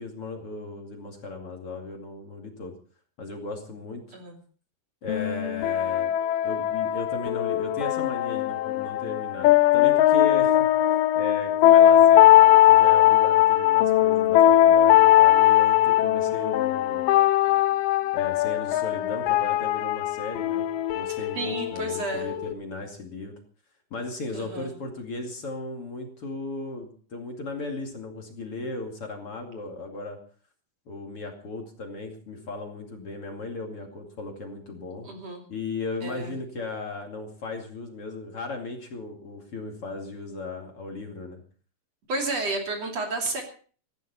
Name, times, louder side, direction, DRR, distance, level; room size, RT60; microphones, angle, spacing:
voice 1, 0.0-2.7 3.2-4.2 5.0-6.1 6.4-10.6 11.1-17.0 18.1-20.7 20.9-23.3 23.9-30.2 30.9-35.1 35.5-41.4, left 3 dB, 45° left, 2 dB, 3.2 m, -36 dB
sound 1, 5.1-22.5, left 12 dB, 75° left, 2.4 m, -20 dB
voice 2, 21.3-22.3 24.3-24.7 35.0-35.4 36.0-36.3 42.1-43.4, right 2 dB, 50° right, 2 dB, 3.9 m, -31 dB
18.5 x 15.0 x 4.3 m, 0.42 s
omnidirectional pair, 4.0 m